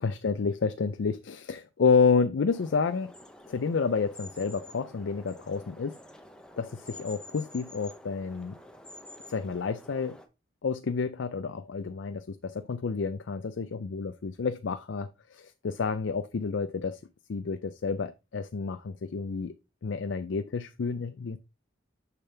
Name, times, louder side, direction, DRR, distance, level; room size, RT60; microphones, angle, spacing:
voice 1, 0.0-3.1 3.5-5.9 6.6-8.6 9.3-10.2 10.6-17.0 17.3-19.5 19.8-21.4, left 5 dB, 70° left, 0.4 m, -29 dB
sound 1, 2.5-10.3, left 1 dB, 5° left, 0.7 m, -49 dB
6.7 x 6.0 x 3.3 m
head